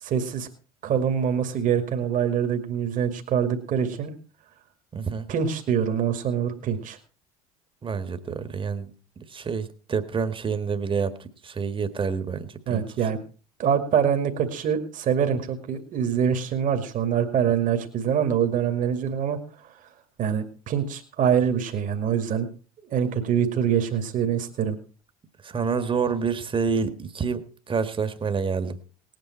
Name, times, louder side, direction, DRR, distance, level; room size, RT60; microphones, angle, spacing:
voice 1, 0.0-0.5 0.8-4.1 5.3-7.0 12.7-13.2 13.6-19.7 20.2-22.5 22.9-24.8, right 8 dB, 50° right, 6 dB, 2.3 m, -24 dB
voice 2, 4.9-5.3 7.8-12.8 25.4-28.8, right 5 dB, 30° right, 11 dB, 1.7 m, -28 dB
18.5 x 9.0 x 4.4 m, 0.36 s
hypercardioid pair, 70°, 18 cm